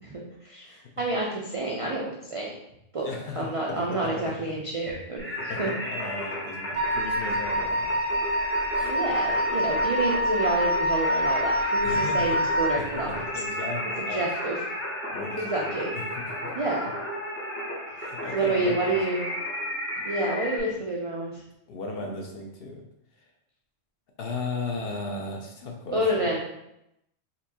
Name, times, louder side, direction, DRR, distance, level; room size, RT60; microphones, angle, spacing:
voice 1, 0.0-2.5 2.9-3.1 3.4-5.7 8.8-13.1 14.0-14.5 15.4-15.9 16.5-16.9 18.3-19.2 20.1-21.4 25.9-26.4, right 2 dB, 55° right, -3 dB, 0.3 m, -28 dB
voice 2, 3.0-4.5 5.3-8.0 8.7-8.9 11.8-12.4 12.8-14.3 15.1-16.5 18.0-19.0 20.0-20.1 21.7-22.8 24.2-26.3, left 3 dB, 60° left, 1 dB, 0.7 m, -36 dB
Singing, 5.2-20.6, left 1 dB, 20° left, 0.4 m, -34 dB
Wind instrument woodwind instrument, 6.7-12.8, equal, 75° right, 1.0 m, -26 dB
4.2 x 2.6 x 2.7 m, 0.82 s
omnidirectional pair, 1.3 m